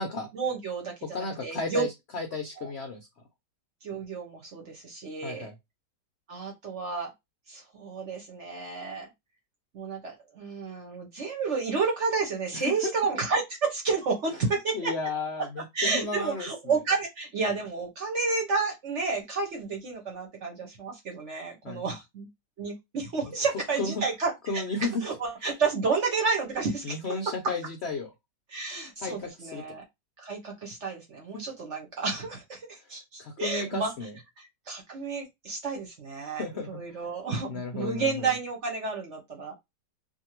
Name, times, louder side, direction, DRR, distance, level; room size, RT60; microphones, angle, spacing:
voice 1, 0.3-1.8 2.6-2.7 3.8-5.5 6.3-7.1 7.5-9.1 9.7-14.9 15.7-22.3 22.6-24.6 25.0-27.0 28.5-29.8 30.2-33.9 34.4-39.5, right 4 dB, 55° right, 1 dB, 0.9 m, -31 dB
voice 2, 1.1-3.1 5.2-5.5 12.5-12.7 14.7-16.7 21.6-21.8 23.8-24.0 24.5-25.0 26.8-28.1 29.0-29.8 31.3-31.4 33.2-34.2 36.4-37.0 37.5-38.4, left 3 dB, 80° left, 3 dB, 0.6 m, -33 dB
2.6 x 2.6 x 2.9 m, 0.19 s
omnidirectional pair, 1.9 m